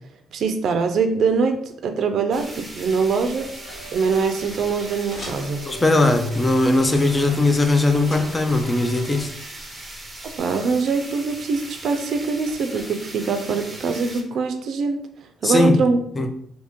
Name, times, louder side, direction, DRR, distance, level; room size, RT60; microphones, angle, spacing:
voice 1, 0.3-3.5 3.9-5.6 10.2-15.0 15.4-16.0, right 5 dB, 65° right, 6 dB, 0.4 m, -23 dB
sound 1, 2.3-10.4, left 1 dB, 50° left, 1.0 m, -43 dB
sound 2, 2.3-14.2, right 2 dB, 15° right, 0.8 m, -39 dB
sound 3, 3.3-9.2, right 3 dB, 75° left, 1.0 m, -42 dB
voice 2, 5.7-9.3 15.4-15.8 16.2-16.3, left 2 dB, 20° left, 6 dB, 0.4 m, -19 dB
2.8 x 2.7 x 3.5 m, 0.67 s
cardioid pair, 90°, 0 cm